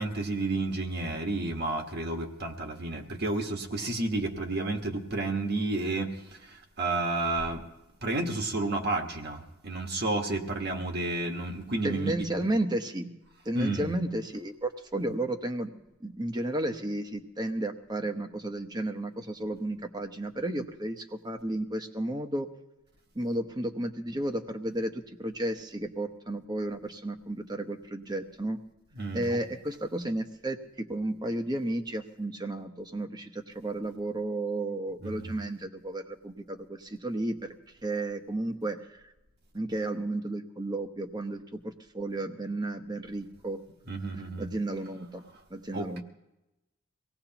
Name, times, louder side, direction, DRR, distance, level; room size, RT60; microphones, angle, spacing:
voice 1, 0.0-7.6 8.0-12.1 13.5-13.9 28.9-29.3 35.0-35.3 43.9-44.5 45.7-46.0, right 2 dB, 50° right, 4 dB, 1.6 m, -31 dB
voice 2, 11.8-13.1 13.4-15.7 16.0-22.5 23.1-28.6 29.1-37.5 37.8-39.0 39.5-43.6 44.4-45.2 45.5-46.0, right 1 dB, 20° right, 6 dB, 1.0 m, -33 dB
24.5 x 17.5 x 3.0 m, 0.95 s
head